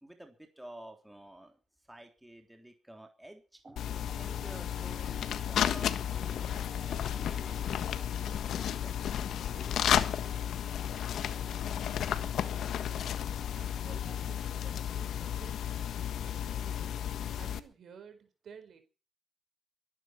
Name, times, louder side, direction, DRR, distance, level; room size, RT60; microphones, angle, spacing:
voice 1, 0.0-1.6 1.9-3.9 4.2-7.6 8.2-10.0, right 1 dB, 5° right, 4 dB, 3.5 m, -51 dB
sound 1, 3.6-15.0, right 4 dB, 30° right, 6.5 m, -57 dB
sound 2, 3.8-17.6, left 9 dB, 70° left, 1.4 m, -33 dB
voice 2, 11.4-13.2 13.5-15.6 16.1-17.1 17.3-18.8, right 7 dB, 60° right, 8 dB, 4.6 m, -54 dB
23.5 x 11.0 x 4.5 m, 0.36 s
cardioid pair, 90°, 0 cm